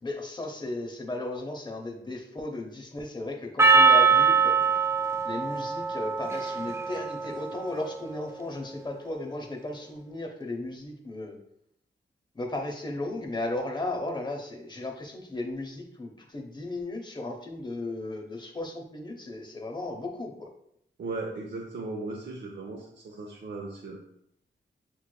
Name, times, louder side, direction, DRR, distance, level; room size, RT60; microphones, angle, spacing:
voice 1, 0.0-4.6 5.2-11.4 12.3-20.5, left 2 dB, 25° left, 2 dB, 0.7 m, -35 dB
Percussion, 3.6-8.2, right 5 dB, 15° right, 0.4 m, -23 dB
voice 2, 21.0-24.0, right 3 dB, 65° right, -2 dB, 0.7 m, -37 dB
6.8 x 3.1 x 2.2 m, 0.73 s
wide cardioid pair, 115°, 20 cm